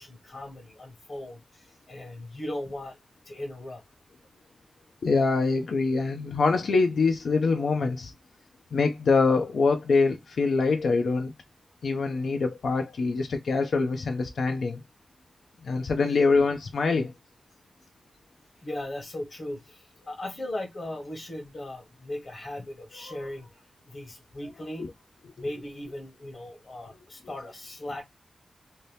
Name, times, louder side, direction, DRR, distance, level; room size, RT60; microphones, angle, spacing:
voice 1, 0.0-3.0 3.2-3.8 18.6-23.5 23.8-24.9 25.4-28.0, left 1 dB, 45° left, 1.0 m, -38 dB
voice 2, 5.0-8.1 8.7-11.3 11.8-14.8 15.6-17.1 24.8-24.9, left 4 dB, 85° left, 0.5 m, -24 dB
2.8 x 2.7 x 3.2 m
wide cardioid pair, 175°, 0 cm